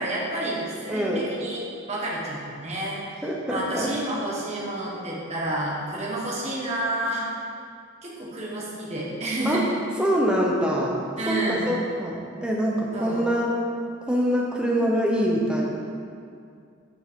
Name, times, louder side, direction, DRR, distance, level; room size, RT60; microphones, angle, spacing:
voice 1, 0.0-3.0 3.5-7.3 8.0-9.7 11.2-11.7 12.9-13.2, right 1 dB, 30° right, -5 dB, 1.3 m, -29 dB
voice 2, 0.9-1.3 3.2-3.9 9.4-9.6 10.0-11.0 11.3-13.5 14.1-15.6, equal, 5° right, -3 dB, 0.7 m, -24 dB
7.3 x 6.1 x 3.7 m, 2.4 s
head